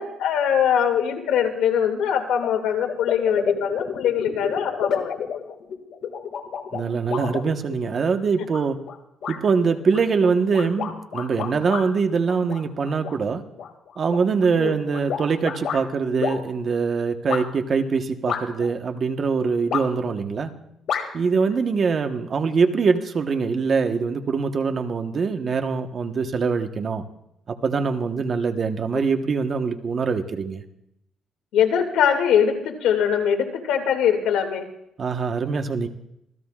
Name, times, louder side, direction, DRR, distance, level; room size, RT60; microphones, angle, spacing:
voice 1, 0.0-5.1 14.6-14.7 28.9-29.0 31.5-34.7, left 8 dB, 85° left, 4 dB, 2.3 m, -22 dB
sound 1, 2.4-2.5 2.9-8.0 8.5-9.0 9.2-9.4 9.9-11.8 12.3-13.2 13.6-15.8 16.2-16.4 17.3-17.4 18.3-18.7 19.7-20.1 20.9-21.0, left 7 dB, 65° left, 2.2 m, -30 dB
voice 2, 6.7-8.8 9.3-13.4 14.0-20.5 21.1-27.0 27.6-30.6 35.0-35.9, right 5 dB, 45° right, 6 dB, 1.2 m, -23 dB
26.0 x 17.0 x 2.4 m, 0.80 s
cardioid pair, 110°, 0 cm